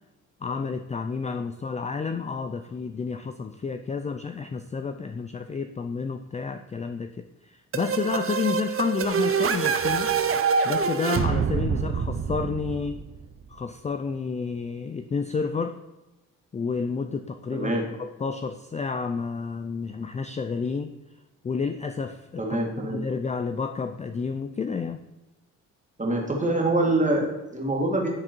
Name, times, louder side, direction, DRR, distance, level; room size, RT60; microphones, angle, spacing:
voice 1, 0.4-10.2 10.6-13.0 13.5-15.8 16.5-17.7 18.0-20.9 21.4-22.4 22.8-25.0, left 5 dB, 20° left, 8 dB, 0.4 m, -30 dB
sound 1, 7.7-13.4, right 6 dB, 40° right, 0.7 m, -26 dB
voice 2, 17.5-17.8 22.4-23.0 26.0-28.1, right 2 dB, 20° right, -1 dB, 2.0 m, -25 dB
10.5 x 3.6 x 4.4 m, 1.0 s
cardioid pair, 90°, 33 cm